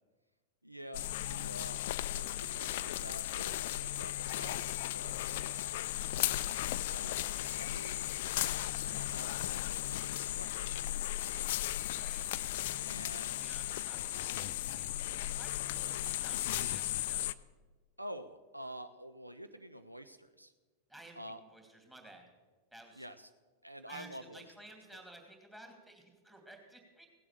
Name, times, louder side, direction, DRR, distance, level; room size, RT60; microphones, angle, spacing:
voice 1, 0.6-1.8 2.1-5.9 6.9-11.4 12.9-13.6 18.0-20.5 21.2-21.4 23.0-23.3 23.6-24.5 24.9-25.0, equal, 90° right, 10 dB, 0.5 m, -49 dB
sound 1, 0.9-17.3, left 14 dB, 55° left, 0.4 m, -36 dB
voice 2, 11.9-12.3 13.3-17.3 20.9-22.3 22.7-23.1 23.9-27.1, right 1 dB, 10° right, 2 dB, 2.7 m, -55 dB
17.0 x 7.8 x 6.7 m, 1.3 s
figure-of-eight pair, 90°, 0 cm